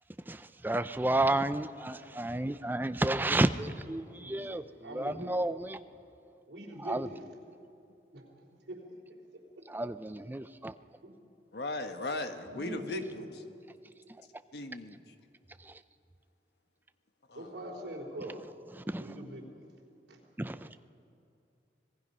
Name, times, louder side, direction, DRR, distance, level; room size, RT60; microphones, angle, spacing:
voice 1, 0.3-4.6 4.9-5.8 6.8-7.1 9.7-10.7 15.6-15.8 18.8-19.0 20.4-20.7, right 1 dB, 10° right, 12 dB, 0.5 m, -31 dB
voice 2, 4.2-5.6 6.5-7.3 8.1-8.8 11.0-11.3 12.4-13.3 17.3-18.4 18.9-20.2, right 1 dB, 75° right, -1 dB, 3.6 m, -43 dB
voice 3, 11.5-13.2 14.5-15.1 17.3-17.5, left 2 dB, 65° left, 7 dB, 1.2 m, -38 dB
25.0 x 19.5 x 5.5 m, 2.6 s
head